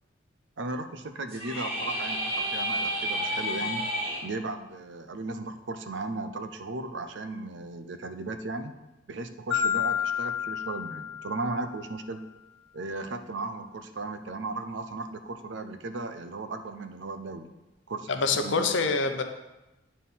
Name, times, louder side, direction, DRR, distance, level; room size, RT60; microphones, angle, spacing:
voice 1, 0.6-3.9 4.2-8.7 9.1-12.3 12.7-17.5 17.9-18.9, right 2 dB, 65° right, 9 dB, 0.6 m, -36 dB
sound 1, 1.3-4.2, equal, 30° right, 2.8 m, -30 dB
Marimba xylophone, 9.5-11.7, left 9 dB, 10° left, 2.2 m, -30 dB
voice 2, 18.1-19.2, left 4 dB, 70° left, 6 dB, 0.8 m, -25 dB
9.1 x 4.3 x 5.6 m, 1.0 s
head